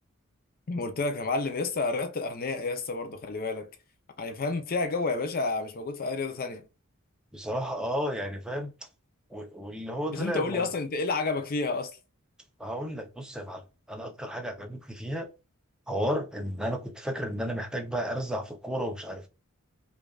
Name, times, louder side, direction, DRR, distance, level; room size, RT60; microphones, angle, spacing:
voice 1, 0.7-3.7 4.2-6.6 10.1-11.9, left 3 dB, 40° left, 0.6 m, -30 dB
voice 2, 7.3-8.7 9.3-10.7 12.6-15.3 15.9-19.3, equal, 5° right, 0.7 m, -33 dB
5.2 x 2.5 x 2.3 m
head